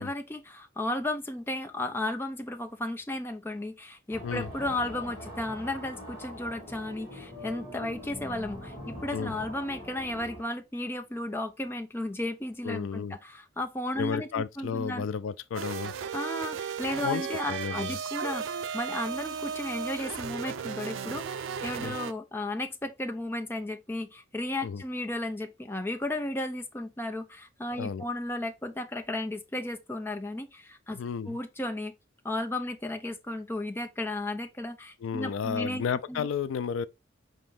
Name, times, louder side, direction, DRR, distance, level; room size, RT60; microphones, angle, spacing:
voice 1, 0.0-15.1 16.1-31.0 31.3-31.9 32.2-35.8 36.1-36.3, left 1 dB, 10° left, 0.5 m, -34 dB
sound 1, 4.1-10.4, left 1 dB, 30° left, 2.3 m, -42 dB
voice 2, 12.6-13.2 14.0-15.9 17.0-18.0 21.8-22.0 24.6-24.8 27.8-28.0 30.9-31.4 35.0-36.9, left 6 dB, 80° left, 0.3 m, -32 dB
sound 2, 15.5-22.1, right 7 dB, 80° right, 0.4 m, -35 dB
5.1 x 2.8 x 3.6 m
head